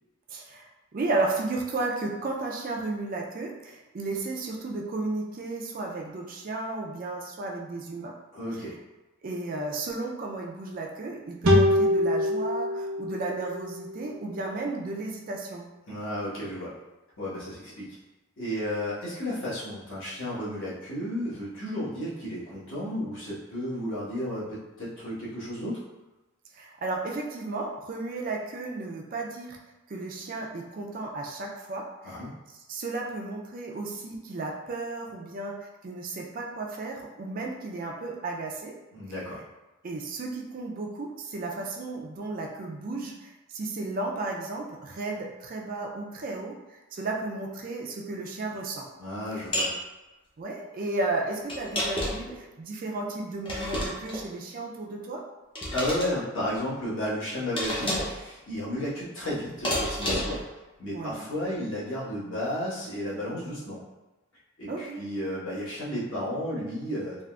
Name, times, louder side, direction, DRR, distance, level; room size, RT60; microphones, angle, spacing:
voice 1, 0.3-8.1 9.2-15.6 26.5-29.6 29.9-32.2 32.5-38.8 39.8-48.9 49.3-49.4 50.4-55.2 60.9-61.3 64.7-65.0, right 3 dB, 40° right, 0 dB, 0.4 m, -34 dB
voice 2, 8.3-8.7 15.9-16.7 17.2-18.0 18.4-25.8 32.0-32.3 38.9-39.4 49.0-49.7 55.7-60.4 60.8-63.8 64.6-67.2, left 1 dB, 60° left, -9 dB, 1.2 m, -33 dB
sound 1, 11.4-14.8, left 1 dB, 75° right, 0.7 m, -25 dB
sound 2, 49.5-49.8 51.5-52.3 53.4-54.2 55.5-56.1 57.6-58.2 59.6-60.4, left 1 dB, 25° left, 0.6 m, -30 dB
3.6 x 2.4 x 2.3 m, 1.1 s
head